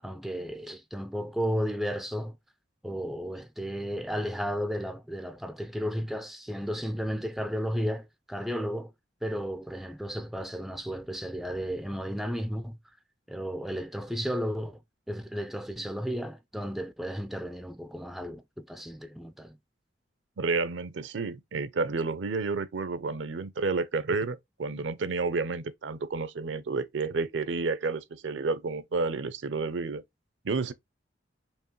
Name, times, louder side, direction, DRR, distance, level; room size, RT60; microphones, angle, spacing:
voice 1, 0.0-2.4 2.8-8.9 9.2-12.8 13.3-14.8 15.1-19.6, equal, ahead, 0.3 m, -33 dB
voice 2, 20.4-30.0 30.4-30.7, right 4 dB, 75° right, 0.5 m, -30 dB
4.6 x 2.9 x 3.0 m
head